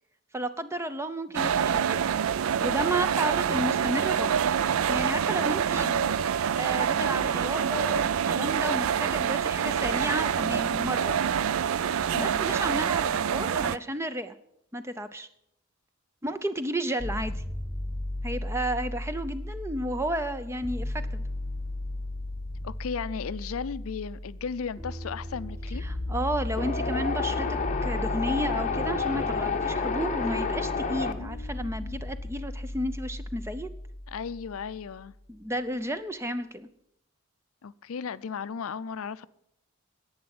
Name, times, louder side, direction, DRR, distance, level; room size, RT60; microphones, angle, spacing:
voice 1, 0.3-2.1 2.6-4.4 4.9-5.9 6.6-11.1 12.1-14.3 14.7-15.3 16.2-17.4 18.2-21.2 25.8-33.7 35.3-36.7, right 1 dB, 10° right, 0.6 m, -32 dB
sound 1, 1.3-13.8, right 8 dB, 75° right, 0.4 m, -26 dB
voice 2, 5.4-6.2 12.1-12.4 22.6-25.9 31.2-32.0 34.1-35.1 37.6-39.3, left 6 dB, 80° left, 0.5 m, -36 dB
sound 2, 17.0-35.0, left 1 dB, 5° left, 1.9 m, -35 dB
Wind, 26.6-31.1, left 4 dB, 35° left, 0.8 m, -29 dB
11.0 x 8.7 x 7.7 m
head